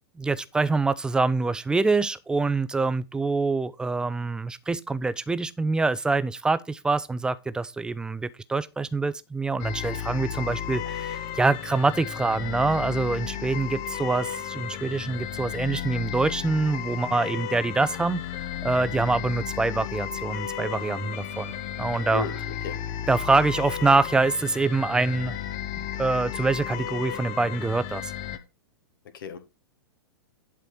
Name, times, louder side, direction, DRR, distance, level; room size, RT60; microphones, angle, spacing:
voice 1, 0.2-21.5 21.8-22.3 23.1-25.4 25.8-28.1, right 3 dB, 5° right, 0.5 m, -25 dB
sound 1, 9.6-28.4, left 10 dB, 35° left, 1.0 m, -34 dB
voice 2, 22.1-22.8 29.1-29.4, left 6 dB, 60° left, 1.7 m, -34 dB
11.0 x 4.5 x 4.9 m
figure-of-eight pair, 105°, 13 cm